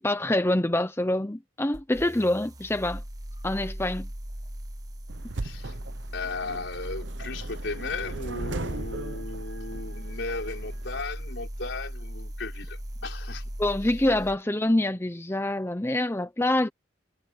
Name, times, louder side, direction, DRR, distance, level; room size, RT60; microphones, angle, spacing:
voice 1, 0.0-3.0 3.4-4.1 13.6-16.7, left 1 dB, 15° left, 0.7 m, -26 dB
sound 1, 1.7-14.4, equal, 20° right, 1.4 m, -38 dB
sound 2, 5.1-11.0, right 3 dB, 75° right, 0.8 m, -39 dB
voice 2, 5.4-5.7 6.1-13.5, left 3 dB, 70° left, 4.7 m, -36 dB
head